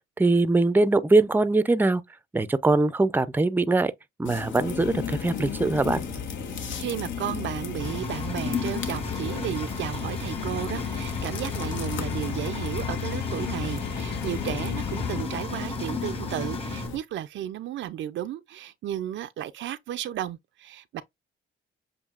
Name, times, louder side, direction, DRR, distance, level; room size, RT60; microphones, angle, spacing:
voice 1, 0.2-2.0 2.3-3.9 4.2-6.0, right 2 dB, 10° right, 0.5 m, -22 dB
sound 1, 4.2-17.0, left 5 dB, 75° left, 1.4 m, -35 dB
sound 2, 4.6-15.2, left 11 dB, 55° left, 0.5 m, -36 dB
voice 2, 6.8-21.0, right 11 dB, 70° right, 0.5 m, -33 dB
Engine, 7.8-16.9, left 3 dB, 30° left, 1.5 m, -36 dB
7.2 x 2.8 x 2.4 m
cardioid pair, 90°, 20 cm